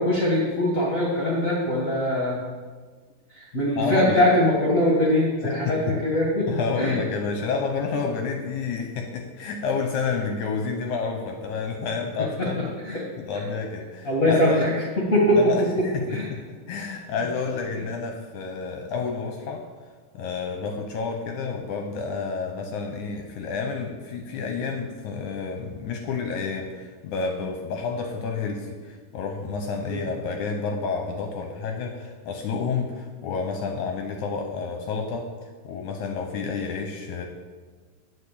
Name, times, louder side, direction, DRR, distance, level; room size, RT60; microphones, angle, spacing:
voice 1, 0.0-2.4 3.3-7.0 12.4-12.5 12.8-13.0 14.0-16.3 29.9-30.0, left 1 dB, 35° left, -4 dB, 1.3 m, -22 dB
voice 2, 3.8-4.2 5.4-6.0 6.5-14.7 15.4-16.4 16.7-19.6 20.1-35.3 35.6-37.3, left 5 dB, 70° left, 3 dB, 1.9 m, -29 dB
8.4 x 6.9 x 8.4 m, 1.5 s
omnidirectional pair, 4.2 m